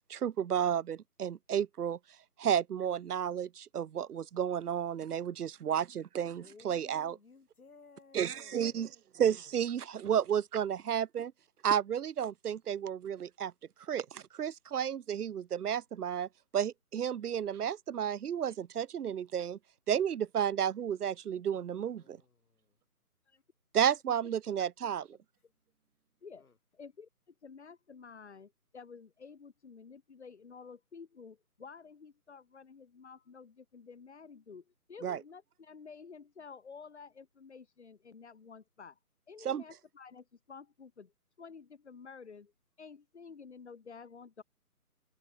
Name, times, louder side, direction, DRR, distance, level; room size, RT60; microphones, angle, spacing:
voice 1, 0.1-2.0 2.4-7.2 8.1-8.9 9.2-11.3 11.6-13.5 13.9-19.6 19.9-22.2 23.7-25.0 35.0-35.2 39.4-39.6, right 9 dB, 80° right, 0.7 m, -32 dB
voice 2, 6.4-8.9 21.7-22.6 26.4-26.5, left 4 dB, 70° left, 5.9 m, -58 dB
voice 3, 26.7-39.0 39.3-41.1 41.4-42.5 42.8-44.4, left 5 dB, 45° left, 6.1 m, -51 dB
hypercardioid pair, 170°, 45 cm